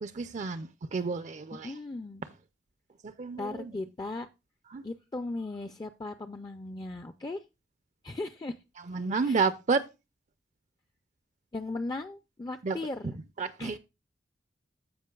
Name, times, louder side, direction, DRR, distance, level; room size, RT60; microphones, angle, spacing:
voice 1, 0.0-1.7 3.0-3.7 4.7-4.8 8.9-9.8 12.6-12.8 13.0-13.1 13.4-13.8, right 4 dB, 40° right, 0.4 m, -30 dB
voice 2, 1.6-2.3 3.4-4.3 4.8-7.4 8.0-8.6 9.2-9.5 11.5-13.2 13.6-13.8, left 2 dB, 20° left, 0.4 m, -37 dB
15.0 x 5.1 x 2.3 m
head